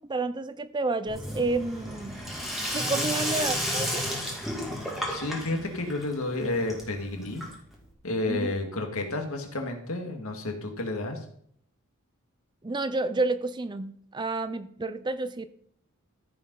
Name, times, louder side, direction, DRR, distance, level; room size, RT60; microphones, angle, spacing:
voice 1, 0.1-2.2 2.7-4.1 8.3-8.5 12.6-15.5, right 3 dB, 20° right, 13 dB, 0.4 m, -30 dB
Sink (filling or washing), 1.1-7.8, equal, ahead, 2.2 m, -32 dB
voice 2, 2.7-3.1 5.1-7.4 8.0-11.2, left 2 dB, 75° left, 4 dB, 2.0 m, -31 dB
14.0 x 5.3 x 5.5 m, 0.66 s
head